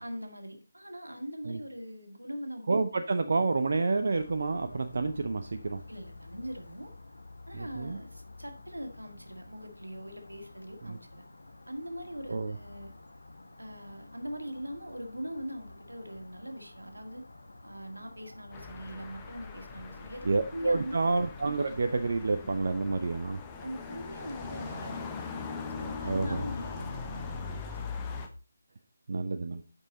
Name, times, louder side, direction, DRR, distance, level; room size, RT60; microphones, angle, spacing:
voice 1, 0.0-2.7 5.9-6.9 7.5-11.3 11.7-12.9 13.6-17.2 17.6-21.0 23.2-23.3 23.6-25.3 25.7-27.9, equal, 80° right, 5 dB, 1.7 m, -41 dB
voice 2, 2.7-5.8 7.5-8.0 10.9-11.0 12.3-12.5 20.2-23.4 26.0-26.4 29.1-29.6, right 3 dB, 50° right, 7 dB, 0.5 m, -29 dB
sound 1, 3.9-22.4, left 2 dB, 65° left, 1.1 m, -51 dB
sound 2, 18.5-28.3, left 5 dB, 15° left, 0.8 m, -40 dB
8.1 x 5.5 x 4.0 m, 0.34 s
figure-of-eight pair, 150°, 0 cm